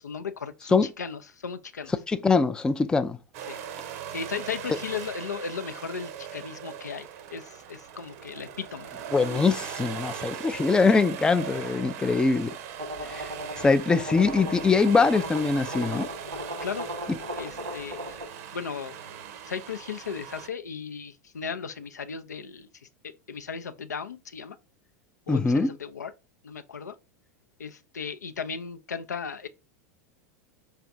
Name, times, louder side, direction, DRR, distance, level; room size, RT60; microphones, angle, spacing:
voice 1, 0.0-1.9 3.5-3.6 4.1-8.9 16.6-16.9 17.4-18.2 18.5-19.0 19.4-22.7 23.0-24.6 25.3-26.1 26.4-26.9 27.6-29.5, left 6 dB, 80° left, 0.4 m, -36 dB
voice 2, 2.1-3.2 9.1-12.6 13.0-13.3 13.6-16.1 17.1-17.2 25.3-25.7, left 4 dB, 10° left, 0.3 m, -23 dB
sound 1, 3.3-20.5, right 9 dB, 60° right, 0.7 m, -40 dB
sound 2, 12.8-18.3, equal, 90° right, 1.2 m, -37 dB
4.8 x 3.2 x 2.5 m
figure-of-eight pair, 90°, 9 cm